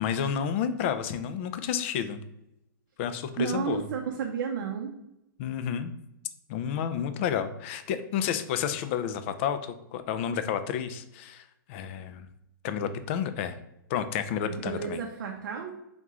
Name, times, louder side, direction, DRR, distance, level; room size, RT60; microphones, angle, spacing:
voice 1, 0.0-2.2 3.0-3.9 5.4-5.9 6.5-12.3 12.6-13.6 13.9-15.0, left 8 dB, 35° left, 10 dB, 0.4 m, -30 dB
voice 2, 3.4-4.9 14.5-15.7, right 6 dB, 60° right, 1 dB, 0.6 m, -32 dB
3.6 x 3.0 x 3.6 m, 0.86 s
hypercardioid pair, 150°, 11 cm